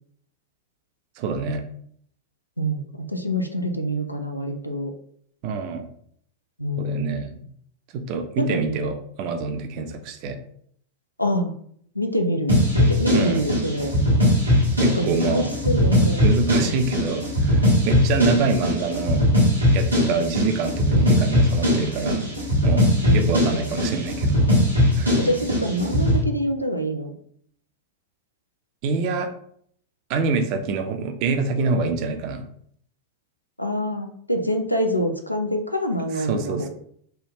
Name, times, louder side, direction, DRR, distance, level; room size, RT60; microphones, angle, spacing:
voice 1, 1.2-1.6 5.4-5.9 6.8-7.3 7.9-10.4 13.1-13.5 14.8-15.5 16.2-19.3 19.7-22.3 22.6-22.9 23.1-24.4 25.0-25.2 28.8-29.3 30.1-32.5 36.1-36.7, right 4 dB, 45° right, 6 dB, 0.4 m, -26 dB
voice 2, 2.6-4.9 6.6-7.4 8.4-8.8 11.2-11.5 12.0-13.9 14.8-16.2 20.2-20.5 23.0-23.4 25.2-27.1 33.6-36.7, equal, 90° left, 5 dB, 0.4 m, -26 dB
sound 1, 12.5-26.2, left 1 dB, 85° right, 1.1 m, -20 dB
3.3 x 2.3 x 2.9 m, 0.65 s
figure-of-eight pair, 90°, 0 cm